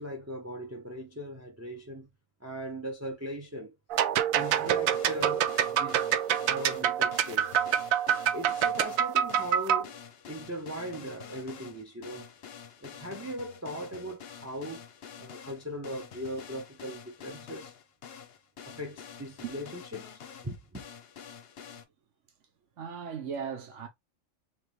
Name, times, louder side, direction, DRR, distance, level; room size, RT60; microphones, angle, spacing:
voice 1, 0.0-2.1 2.4-3.7 4.3-6.0 6.5-7.5 8.3-9.9 10.3-12.3 12.8-14.8 15.2-17.7 18.7-20.1 20.4-20.8, equal, 15° right, 0.8 m, -39 dB
sound 1, 3.9-9.8, right 9 dB, 85° right, 1.0 m, -26 dB
sound 2, 4.4-21.8, left 7 dB, 55° left, 0.9 m, -47 dB
voice 2, 22.8-23.9, right 7 dB, 65° right, 1.4 m, -37 dB
3.6 x 3.6 x 3.2 m
omnidirectional pair, 1.4 m